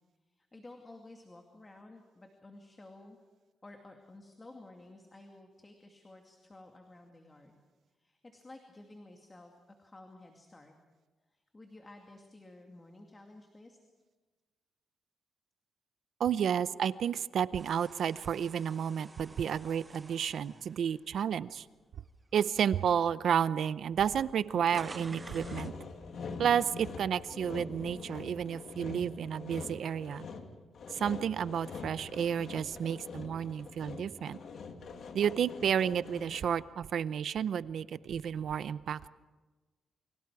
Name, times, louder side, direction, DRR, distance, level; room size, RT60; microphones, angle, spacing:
voice 1, 0.3-3.2 3.6-7.6 7.9-10.7 11.3-13.8, left 2 dB, 20° left, 3 dB, 2.3 m, -53 dB
voice 2, 16.2-21.7 22.3-25.7 26.4-30.3 30.9-34.4 35.1-39.1, right 8 dB, 65° right, 16 dB, 0.6 m, -31 dB
sound 1, 17.6-21.8 22.3-22.5 23.4-23.5 23.7-25.8, right 3 dB, 20° right, 0.9 m, -51 dB
Sawing, 24.5-36.6, left 4 dB, 60° left, 2.2 m, -44 dB
29.5 x 25.0 x 4.8 m, 1.3 s
cardioid pair, 115°, 0 cm